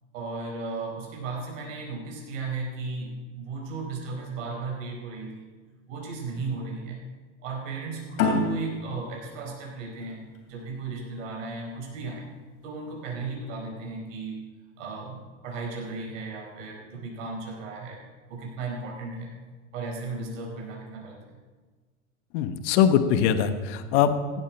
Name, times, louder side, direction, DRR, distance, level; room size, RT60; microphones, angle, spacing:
voice 1, 0.1-5.5 5.9-7.0 7.4-12.3 12.6-14.4 14.8-18.0 18.3-19.3 19.7-21.2, right 3 dB, 75° right, 0 dB, 4.6 m, -35 dB
sound 1, 8.2-11.4, left 3 dB, 80° left, 3.1 m, -29 dB
voice 2, 22.3-24.4, left 8 dB, 60° left, 10 dB, 1.2 m, -22 dB
16.0 x 8.6 x 6.0 m, 1.4 s
supercardioid pair, 120°, 38 cm